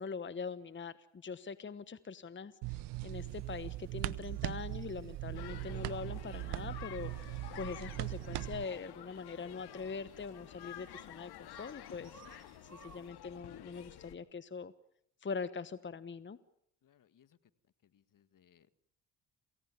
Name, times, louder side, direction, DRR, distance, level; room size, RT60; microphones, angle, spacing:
voice 1, 0.0-12.2 12.7-14.7 15.2-16.4, left 5 dB, 30° left, 14 dB, 1.2 m, -43 dB
sound 1, 2.6-8.6, right 18 dB, 75° right, 1.0 m, -40 dB
sound 2, 3.1-13.1, right 5 dB, 40° right, 3.6 m, -64 dB
sound 3, 5.3-14.2, left 12 dB, 65° left, 2.1 m, -51 dB
voice 2, 16.8-17.3 17.9-18.7, left 9 dB, 50° left, 14 dB, 1.8 m, -68 dB
28.5 x 16.5 x 9.7 m, 0.72 s
supercardioid pair, 65°, 41 cm